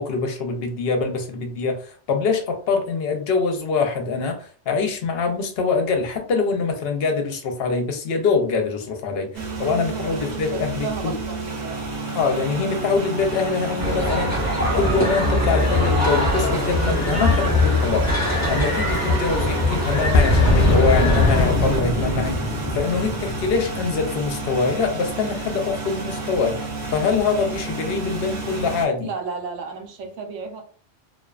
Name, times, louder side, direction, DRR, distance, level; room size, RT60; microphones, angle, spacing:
voice 1, 0.0-11.2 12.1-14.4 14.7-18.1 18.5-29.1, left 4 dB, 65° left, 4 dB, 0.7 m, -24 dB
sound 1, 9.3-28.9, right 3 dB, 50° right, 0.7 m, -31 dB
voice 2, 9.9-11.8 29.0-30.6, right 5 dB, 85° right, 4 dB, 1.0 m, -34 dB
sound 2, 13.8-21.5, left 2 dB, 15° left, 0.9 m, -22 dB
Boom, 20.1-24.8, left 1 dB, 80° left, 0.3 m, -22 dB
2.4 x 2.2 x 2.3 m, 0.41 s
omnidirectional pair, 1.2 m